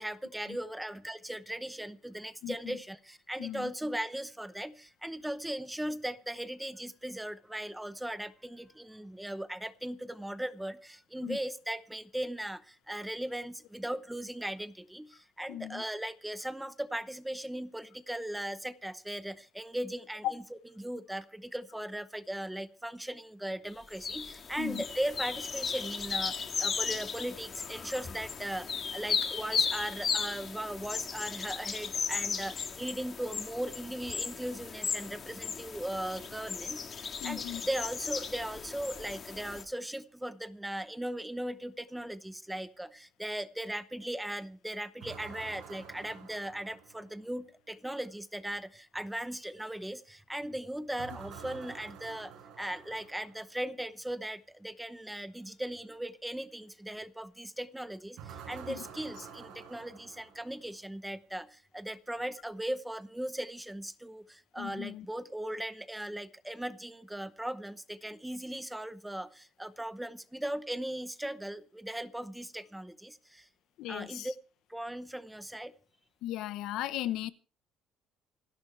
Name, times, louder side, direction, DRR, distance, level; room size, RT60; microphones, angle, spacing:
voice 1, 0.0-20.4 20.8-73.5 73.9-74.3 74.7-75.8, right 1 dB, 5° right, 0.8 m, -38 dB
voice 2, 2.4-2.8 3.4-3.7 11.2-11.4 15.5-15.8 20.2-20.3 24.6-24.8 37.2-37.6 58.7-58.8 64.6-65.1 73.8-74.3 76.2-77.3, left 13 dB, 65° left, 0.9 m, -37 dB
sound 1, 23.9-39.6, left 6 dB, 30° left, 1.8 m, -36 dB
sound 2, 45.0-47.3 51.0-53.5 58.2-60.8, right 7 dB, 65° right, 5.0 m, -49 dB
28.0 x 11.0 x 3.3 m
cardioid pair, 160°, 0 cm